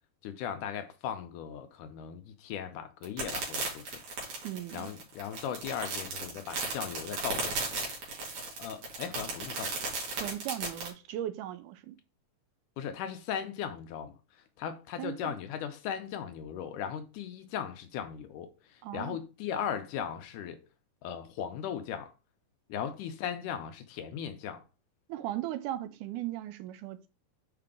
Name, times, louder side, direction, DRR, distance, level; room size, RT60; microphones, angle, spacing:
voice 1, 0.2-4.0 4.7-7.6 8.6-9.8 12.8-20.6 21.0-22.1 22.7-24.6, left 8 dB, 80° left, 2.1 m, -38 dB
sound 1, 3.0-10.9, right 3 dB, 60° right, 3.6 m, -35 dB
voice 2, 4.4-4.9 10.1-12.0 15.0-15.4 18.8-19.2 25.1-27.1, right 13 dB, 80° right, 2.0 m, -37 dB
6.7 x 4.8 x 3.7 m
omnidirectional pair, 3.9 m